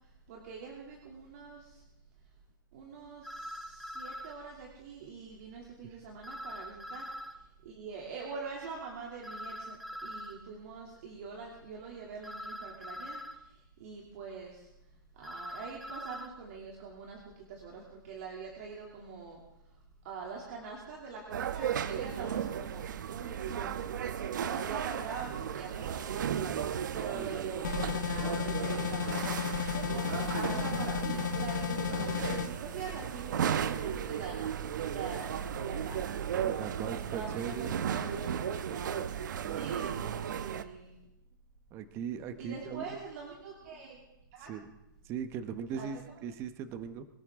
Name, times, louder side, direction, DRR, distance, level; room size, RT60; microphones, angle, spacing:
voice 1, 0.3-1.8 2.7-7.1 7.6-14.7 15.1-19.4 20.0-23.8 24.4-38.9 39.5-40.9 42.4-44.0 44.3-44.5 45.8-45.9, right 5 dB, 45° right, -2 dB, 2.8 m, -44 dB
sound 1, 3.2-4.4 6.2-7.4 9.2-10.4 12.2-13.4 15.2-16.3, equal, ahead, 0.6 m, -43 dB
sound 2, 21.3-40.6, right 8 dB, 60° right, 1.0 m, -35 dB
sound 3, 27.6-32.5, left 8 dB, 60° left, 1.8 m, -33 dB
voice 2, 36.4-37.7 39.4-40.1 41.7-43.0 44.4-44.7 45.1-47.0, right 7 dB, 20° right, 10 dB, 1.0 m, -39 dB
23.5 x 14.0 x 3.7 m, 0.89 s
hypercardioid pair, 155°, 11 cm